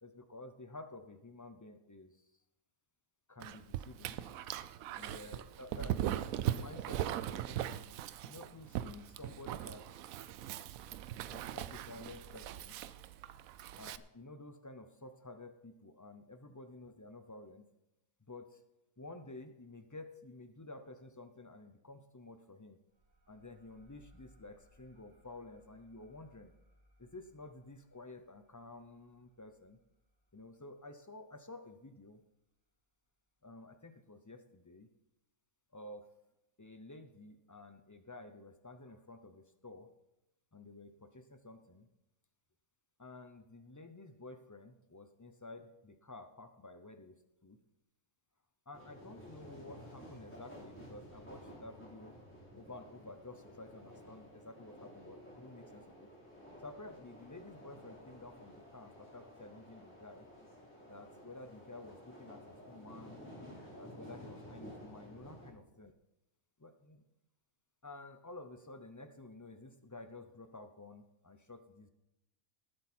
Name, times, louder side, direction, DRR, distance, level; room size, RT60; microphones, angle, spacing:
voice 1, 0.0-2.3 3.3-4.2 5.0-8.0 8.3-10.1 11.3-12.8 13.8-17.6 18.3-18.6 19.0-22.8 23.3-26.5 27.0-29.8 30.3-32.2 33.4-34.9 35.7-36.1 36.6-39.9 40.5-41.9 43.0-47.6 48.7-52.2 52.6-56.1 56.6-60.3 60.9-63.2 63.7-65.9 66.6-67.0 67.8-71.9, left 2 dB, 30° left, 8 dB, 0.3 m, -52 dB
Dog, 3.4-14.0, right 12 dB, 80° right, 1.0 m, -40 dB
sound 1, 22.9-32.1, left 1 dB, 60° right, 2.2 m, -68 dB
sound 2, 48.7-65.5, equal, 10° left, 3.8 m, -53 dB
19.0 x 8.2 x 4.4 m, 0.92 s
omnidirectional pair, 1.4 m